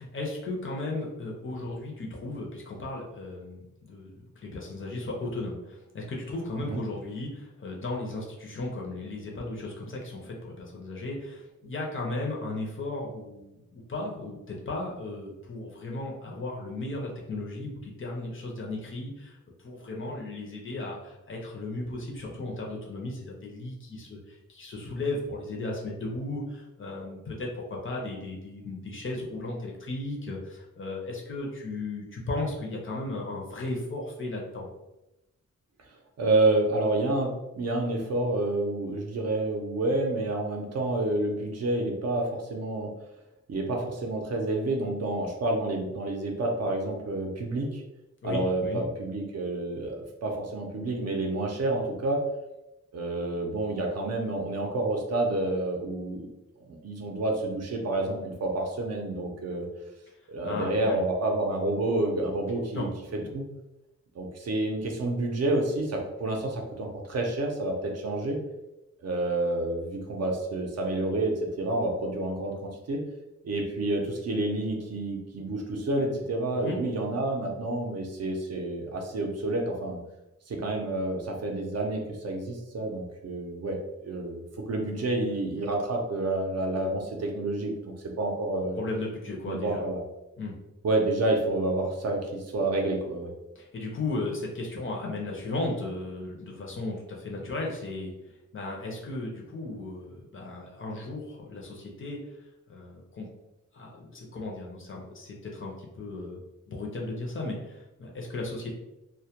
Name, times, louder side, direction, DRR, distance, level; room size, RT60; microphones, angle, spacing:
voice 1, 0.0-19.4 19.6-34.7 48.2-48.8 60.4-61.0 62.7-62.9 63.2-63.3 76.6-76.8 88.8-89.8 90.4-90.5 93.6-98.1 98.5-102.2 102.7-103.3 103.7-106.4 106.7-108.7, left 2 dB, 45° left, -1 dB, 0.5 m, -35 dB
voice 2, 36.2-37.3 37.6-42.9 43.5-47.8 48.2-52.2 52.9-56.3 56.7-59.7 60.3-62.9 63.3-63.4 64.1-68.4 69.0-73.0 73.4-80.0 80.5-83.8 84.0-88.8 89.5-90.0 90.8-93.3, right 2 dB, 55° right, 1 dB, 0.5 m, -29 dB
2.1 x 2.1 x 2.8 m, 0.95 s
wide cardioid pair, 180°, 30 cm